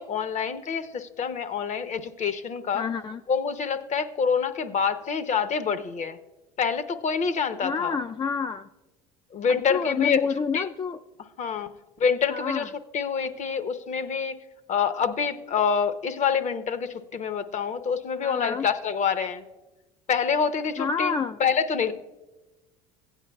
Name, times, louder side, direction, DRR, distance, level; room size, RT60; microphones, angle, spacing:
voice 1, 0.0-2.9 3.3-6.2 6.6-8.0 9.3-10.2 10.5-10.7 11.4-11.7 12.0-14.4 14.7-19.4 20.1-21.1 21.4-21.9, left 6 dB, 40° left, 12 dB, 0.8 m, -26 dB
voice 2, 2.7-3.2 7.6-8.7 9.5-11.0 12.3-12.7 18.2-18.7 20.8-21.4, left 5 dB, 25° left, 9 dB, 0.4 m, -28 dB
16.0 x 9.0 x 2.3 m, 1.1 s
hypercardioid pair, 70°, 18 cm